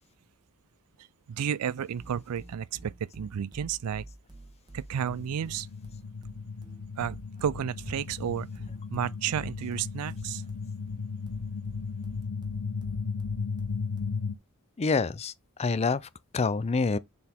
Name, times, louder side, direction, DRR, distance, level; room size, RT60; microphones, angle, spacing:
voice 1, 1.3-4.1 4.7-5.7 7.0-8.5 8.9-10.4, right 8 dB, 85° right, 0.4 m, -32 dB
sound 1, 2.0-14.4, right 2 dB, 20° right, 1.3 m, -49 dB
sound 2, 5.0-14.3, left 5 dB, 80° left, 0.6 m, -36 dB
voice 2, 14.8-15.3 15.6-17.0, left 4 dB, 30° left, 0.4 m, -27 dB
6.8 x 4.0 x 3.6 m
head